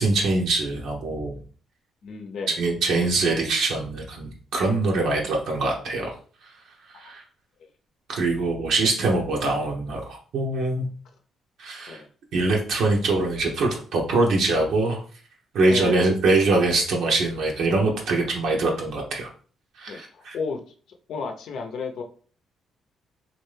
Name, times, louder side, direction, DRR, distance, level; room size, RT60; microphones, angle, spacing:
voice 1, 0.0-1.4 2.6-6.1 6.4-6.5 6.9-7.2 8.1-10.9 11.6-12.0 12.3-15.0 15.5-19.3 19.8-20.3, right 2 dB, 75° right, -1 dB, 0.8 m, -23 dB
voice 2, 2.0-2.6 5.2-5.3 6.9-7.2 7.6-7.7 9.4-9.5 11.9-12.1 15.6-16.1 19.9-20.6 21.1-22.0, left 5 dB, 70° left, 4 dB, 0.6 m, -33 dB
3.2 x 2.6 x 3.2 m, 0.42 s
cardioid pair, 90°, 0 cm